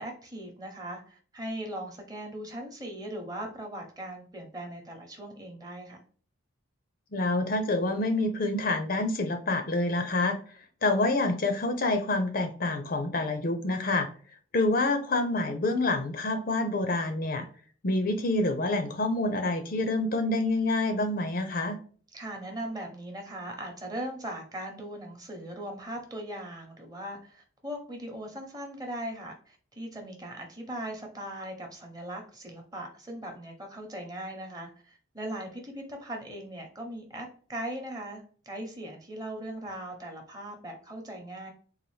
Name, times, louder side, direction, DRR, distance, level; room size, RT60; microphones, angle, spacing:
voice 1, 0.0-6.0 22.1-41.5, right 1 dB, 20° right, 2 dB, 0.9 m, -39 dB
voice 2, 7.1-10.4 10.8-14.1 14.5-17.5 17.8-21.8, left 2 dB, 45° left, 7 dB, 0.5 m, -27 dB
4.0 x 2.5 x 3.2 m, 0.43 s
head